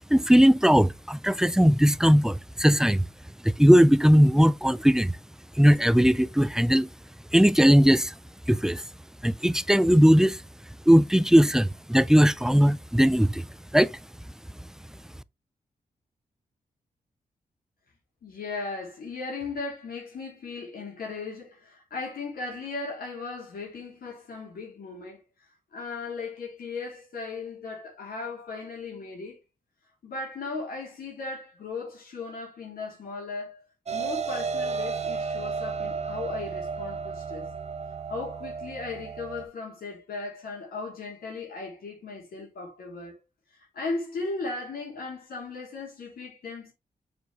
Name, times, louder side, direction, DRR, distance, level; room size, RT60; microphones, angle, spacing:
voice 1, 0.1-3.0 3.4-5.2 5.6-6.9 7.3-8.1 8.5-8.8 9.2-10.4 10.9-13.4 13.7-13.9, equal, 5° right, 0.4 m, -19 dB
voice 2, 18.2-25.2 25.7-29.4 30.0-33.6 33.9-37.5 38.1-43.2 43.5-46.7, left 3 dB, 80° left, 3.1 m, -37 dB
sound 1, 33.9-39.4, right 5 dB, 45° right, 1.1 m, -33 dB
6.7 x 4.7 x 3.4 m
cardioid pair, 90°, 15 cm